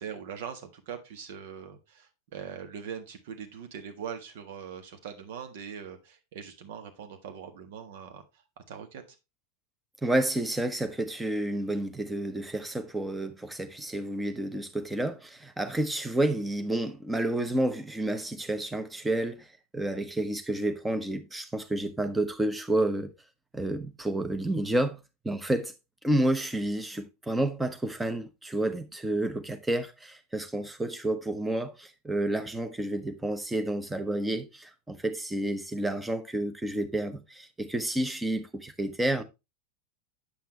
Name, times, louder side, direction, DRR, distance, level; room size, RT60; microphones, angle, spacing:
voice 1, 0.0-9.2, right 7 dB, 55° right, 1.5 m, -42 dB
voice 2, 10.0-19.5 19.7-23.1 23.5-25.0 25.2-25.7 26.0-39.2, right 1 dB, 10° right, 1.0 m, -30 dB
8.6 x 5.8 x 3.2 m
figure-of-eight pair, 85°, 0 cm